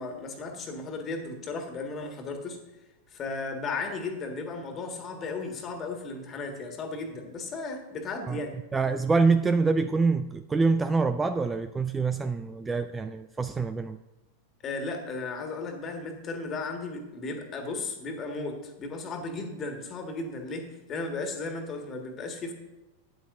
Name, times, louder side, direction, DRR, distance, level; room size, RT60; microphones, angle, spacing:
voice 1, 0.0-2.6 3.1-8.6 14.6-22.5, left 3 dB, 25° left, 4 dB, 1.7 m, -35 dB
voice 2, 8.7-14.0, right 4 dB, 15° right, 11 dB, 0.3 m, -25 dB
12.5 x 9.9 x 2.6 m, 1.1 s
figure-of-eight pair, 90°, 0 cm